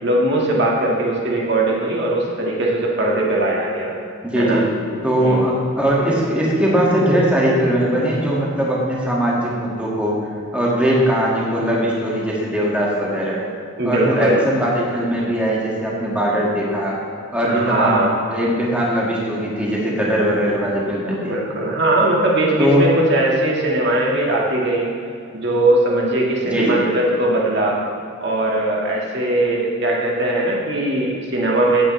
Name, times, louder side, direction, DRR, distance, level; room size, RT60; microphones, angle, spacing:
voice 1, 0.0-3.9 4.4-4.6 5.2-5.5 13.8-14.5 17.4-18.2 21.2-24.9 25.3-27.8 28.2-31.9, right 1 dB, 55° right, -3 dB, 1.7 m, -20 dB
voice 2, 4.2-4.6 5.0-10.2 10.5-13.4 13.8-17.0 17.3-18.0 18.3-21.3 22.6-22.9 26.5-26.8, equal, 5° right, -5 dB, 1.8 m, -20 dB
16.0 x 8.6 x 3.2 m, 2.5 s
head